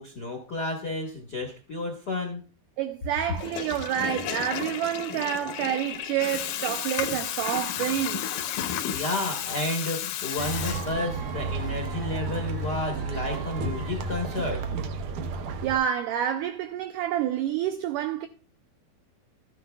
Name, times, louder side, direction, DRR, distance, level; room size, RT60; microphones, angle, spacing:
voice 1, 0.0-2.4 8.9-14.8, left 2 dB, 55° left, 1.1 m, -31 dB
voice 2, 2.8-8.3 15.6-18.3, right 11 dB, 85° right, 1.8 m, -28 dB
Water tap faucet / Toilet flush, 3.3-11.3, left 10 dB, 75° left, 2.2 m, -33 dB
Cheering / Applause / Crowd, 10.3-15.0, right 5 dB, 50° right, 2.2 m, -43 dB
sound 1, 10.4-15.8, right 3 dB, 70° right, 2.3 m, -32 dB
13.5 x 9.5 x 2.3 m
omnidirectional pair, 4.3 m